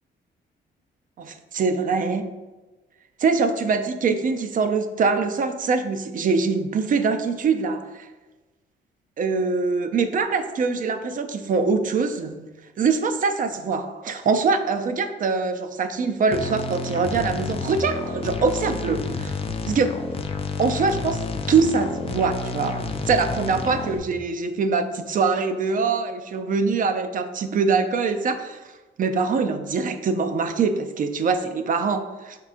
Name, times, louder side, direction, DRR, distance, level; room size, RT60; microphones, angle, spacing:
voice 1, 1.2-2.3 3.2-8.1 9.2-12.5 12.8-19.3 19.7-19.9 20.6-21.2 21.5-28.6 29.0-32.4, right 4 dB, 45° right, 8 dB, 0.4 m, -23 dB
sound 1, 16.3-24.0, left 4 dB, 30° left, 0.4 m, -30 dB
5.2 x 3.7 x 2.4 m, 1.2 s
cardioid pair, 90°, 20 cm